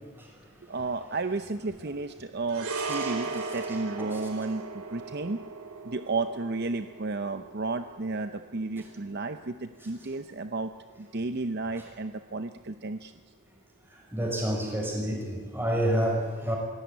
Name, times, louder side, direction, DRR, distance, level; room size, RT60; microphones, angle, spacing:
voice 1, 0.7-5.4 5.8-10.7 11.0-13.1, right 3 dB, 45° right, 9 dB, 0.7 m, -32 dB
sound 1, 2.5-11.0 11.2-11.4, right 4 dB, 75° right, 3.1 m, -38 dB
voice 2, 13.9-16.6, equal, 10° right, -1 dB, 6.0 m, -29 dB
25.5 x 16.5 x 9.4 m, 1.5 s
head